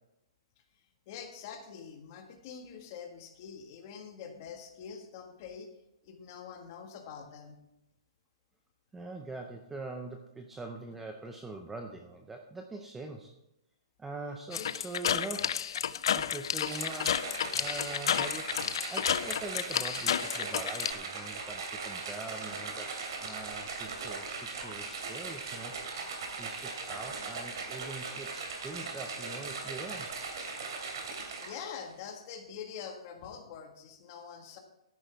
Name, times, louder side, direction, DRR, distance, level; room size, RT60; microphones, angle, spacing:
voice 1, 1.1-5.7 6.0-7.6 14.5-14.7 31.4-34.6, left 7 dB, 30° left, 3 dB, 1.5 m, -45 dB
voice 2, 8.9-13.3 14.0-15.6 16.1-18.5 18.9-22.9 23.2-25.7 26.4-30.1, right 3 dB, 5° right, 4 dB, 0.5 m, -43 dB
sound 1, 14.5-20.9, left 9 dB, 55° left, 0.4 m, -31 dB
sound 2, 16.7-31.8, right 4 dB, 55° right, 2.7 m, -39 dB
13.5 x 10.5 x 3.4 m, 0.89 s
hypercardioid pair, 175°, 3 cm